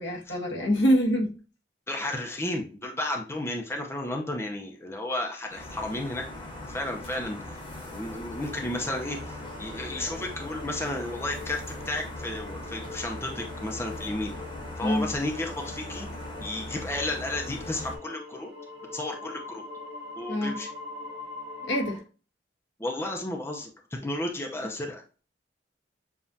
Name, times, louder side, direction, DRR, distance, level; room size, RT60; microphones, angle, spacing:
voice 1, 0.0-1.3 14.8-15.1 20.3-20.5 21.7-22.0, equal, 85° left, 1.2 m, -25 dB
voice 2, 1.9-6.2 6.7-7.4 7.9-14.3 14.8-16.1 16.4-18.5 18.9-19.6 20.2-20.7 22.8-25.0, left 1 dB, 15° left, 0.6 m, -33 dB
sound 1, 5.5-18.0, left 1 dB, 30° left, 1.1 m, -40 dB
sound 2, 8.3-22.0, left 2 dB, 70° right, 1.1 m, -43 dB
7.0 x 2.4 x 2.7 m
head